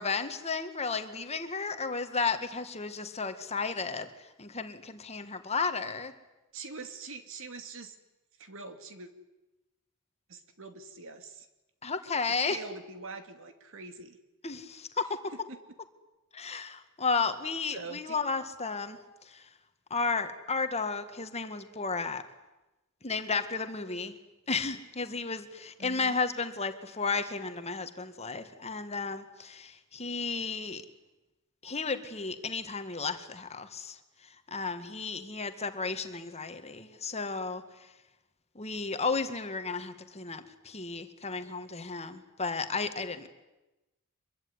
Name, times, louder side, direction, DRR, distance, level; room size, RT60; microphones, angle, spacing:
voice 1, 0.0-4.1 4.4-6.1 11.8-12.6 14.4-15.2 16.3-19.0 19.3-19.4 19.9-22.2 23.0-24.2 24.5-30.8 31.6-34.0 34.5-37.6 38.6-43.3, left 4 dB, 30° left, 8 dB, 1.9 m, -33 dB
voice 2, 6.5-8.0 8.4-9.1 10.3-11.5 12.4-14.2 15.5-15.6 16.5-16.7 17.7-18.2 25.8-26.2, right 4 dB, 60° right, 8 dB, 2.7 m, -44 dB
25.5 x 23.0 x 9.8 m, 1.0 s
head